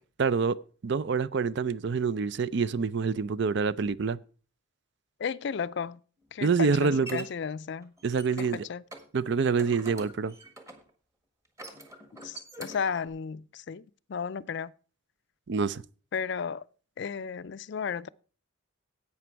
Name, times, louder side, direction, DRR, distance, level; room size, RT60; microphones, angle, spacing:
voice 1, 0.2-0.6 0.8-4.2 6.4-7.2 8.0-8.6 9.1-10.3 15.5-15.8, right 5 dB, 60° right, 0.5 m, -26 dB
voice 2, 5.2-6.0 6.3-7.9 8.4-8.8 12.2-14.7 16.1-16.6 17.0-18.1, left 6 dB, 60° left, 0.4 m, -34 dB
sound 1, 6.2-7.3 7.8-8.6 8.9-9.1 9.4-10.9 11.4-13.1, right 1 dB, 15° right, 1.5 m, -45 dB
11.0 x 8.6 x 4.5 m
head